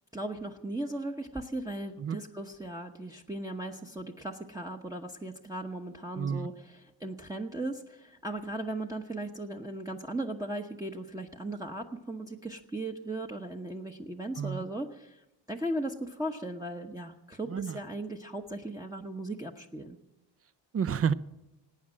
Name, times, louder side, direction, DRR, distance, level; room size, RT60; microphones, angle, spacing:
voice 1, 0.1-20.0, right 1 dB, 10° right, 1 dB, 0.9 m, -37 dB
voice 2, 6.2-6.5 14.4-14.7 17.5-17.8 20.7-21.1, right 7 dB, 35° right, 17 dB, 0.5 m, -30 dB
18.5 x 8.7 x 7.5 m, 0.95 s
cardioid pair, 100°, 44 cm